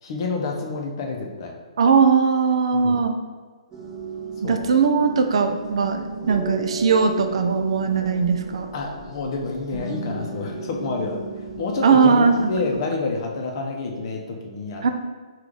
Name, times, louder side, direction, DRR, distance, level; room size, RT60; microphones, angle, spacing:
voice 1, 0.0-1.5 2.7-3.0 4.4-4.6 8.7-11.2 11.6-14.9, left 3 dB, 40° left, 0 dB, 0.6 m, -28 dB
voice 2, 1.8-3.2 4.4-8.7 11.8-12.5 14.8-14.9, right 5 dB, 60° right, 6 dB, 0.4 m, -19 dB
sound 1, 3.7-12.8, right 3 dB, 15° right, 0.8 m, -34 dB
3.2 x 2.4 x 3.7 m, 1.4 s
hypercardioid pair, 155°, 3 cm